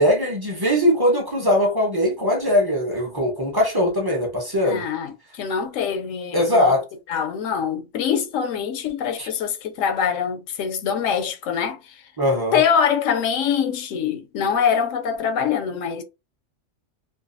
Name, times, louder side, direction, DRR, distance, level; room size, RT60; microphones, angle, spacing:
voice 1, 0.0-4.8 6.3-6.8 9.2-9.3 12.2-12.6, equal, 25° right, 0.5 m, -20 dB
voice 2, 4.6-6.8 7.1-12.0 12.5-16.0, left 7 dB, 80° left, 0.9 m, -24 dB
2.6 x 2.3 x 2.5 m
omnidirectional pair, 1.3 m